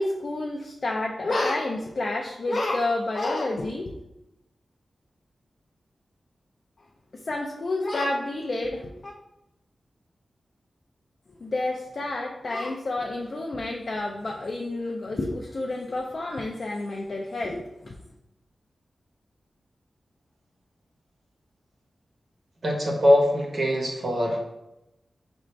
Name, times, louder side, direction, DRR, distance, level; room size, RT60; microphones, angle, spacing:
voice 1, 0.0-4.0 7.1-9.1 11.4-18.0, left 2 dB, 55° left, 0 dB, 0.4 m, -29 dB
voice 2, 22.6-24.4, left 1 dB, 55° right, 0 dB, 1.1 m, -22 dB
5.0 x 2.6 x 3.2 m, 0.90 s
cardioid pair, 60°, 0 cm